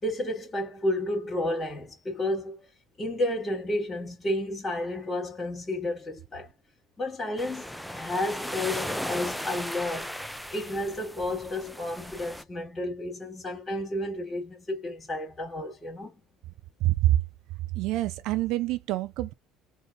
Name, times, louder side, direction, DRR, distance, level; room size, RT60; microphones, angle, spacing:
voice 1, 0.0-2.7 3.0-6.5 7.0-16.2, left 1 dB, 20° left, 2.3 m, -31 dB
sound 1, 7.4-12.4, equal, ahead, 0.4 m, -36 dB
voice 2, 16.8-17.2 17.7-19.3, right 15 dB, 70° right, 0.4 m, -26 dB
4.0 x 2.7 x 3.5 m
cardioid pair, 120°, 0 cm